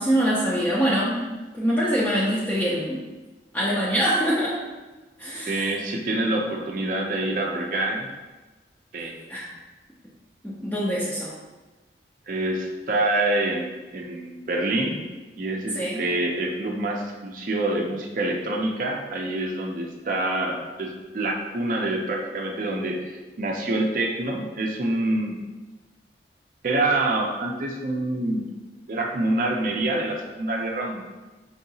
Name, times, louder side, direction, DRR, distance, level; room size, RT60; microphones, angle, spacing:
voice 1, 0.0-3.0 3.5-4.6 5.2-5.8 9.3-9.5 10.4-11.3 15.7-16.0, equal, 10° left, -6 dB, 0.4 m, -24 dB
voice 2, 5.5-8.1 8.9-9.1 12.3-15.0 15.4-25.4 26.6-28.4 28.9-31.0, right 2 dB, 50° right, 0 dB, 0.5 m, -26 dB
4.7 x 2.7 x 2.7 m, 1.2 s
head